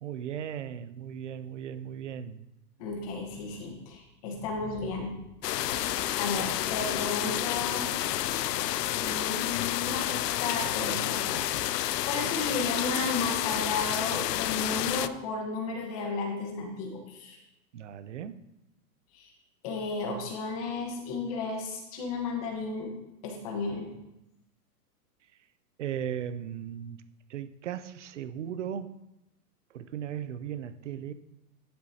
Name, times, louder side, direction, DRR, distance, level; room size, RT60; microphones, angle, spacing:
voice 1, 0.0-2.4 17.7-18.4 25.8-27.0 27.3-29.0 29.7-31.1, right 9 dB, 50° right, 0.6 m, -37 dB
voice 2, 2.8-5.2 5.6-7.9 9.0-17.4 19.1-19.3 19.6-22.9 23.2-23.9, left 3 dB, 25° left, 1.1 m, -34 dB
sound 1, 5.4-15.1, left 13 dB, 80° left, 0.6 m, -30 dB
11.5 x 7.6 x 2.8 m
hypercardioid pair, 175°, 48 cm